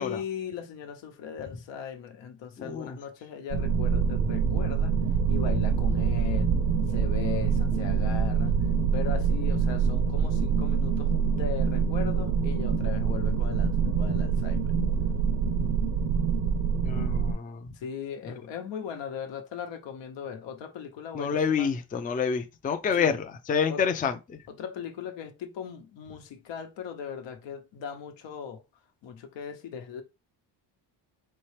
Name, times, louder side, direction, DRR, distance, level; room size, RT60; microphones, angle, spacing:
voice 1, 0.0-4.9 5.3-6.5 6.9-8.6 8.9-14.7 17.7-21.7 23.0-23.2 23.7-23.8 24.5-28.6 29.0-30.0, left 7 dB, 85° left, 1.0 m, -38 dB
voice 2, 2.6-2.9 16.8-17.7 21.1-24.4, left 6 dB, 20° left, 0.4 m, -28 dB
sound 1, 3.5-17.3, right 6 dB, 50° right, 0.7 m, -25 dB
4.4 x 3.2 x 3.2 m
cardioid pair, 125°, 43 cm